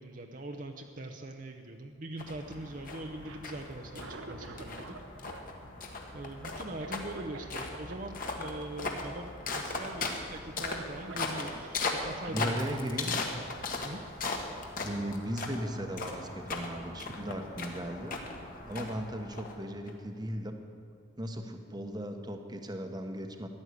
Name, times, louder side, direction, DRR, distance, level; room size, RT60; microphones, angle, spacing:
voice 1, 0.0-4.9 6.1-13.0 13.8-14.0, right 1 dB, 40° right, 3 dB, 0.8 m, -42 dB
sound 1, 2.2-19.9, left 3 dB, 45° left, 1.6 m, -38 dB
Cough, 3.2-5.0 5.3-8.0 8.2-8.5 8.8-9.0 9.3-9.8 10.3-10.4 10.7-12.4 13.2-13.4, right 3 dB, 75° right, 1.3 m, -48 dB
voice 2, 12.3-13.2 14.8-18.2 18.7-20.6 21.2-23.5, equal, 20° right, 5 dB, 1.0 m, -37 dB
14.0 x 11.0 x 8.3 m, 2.3 s
head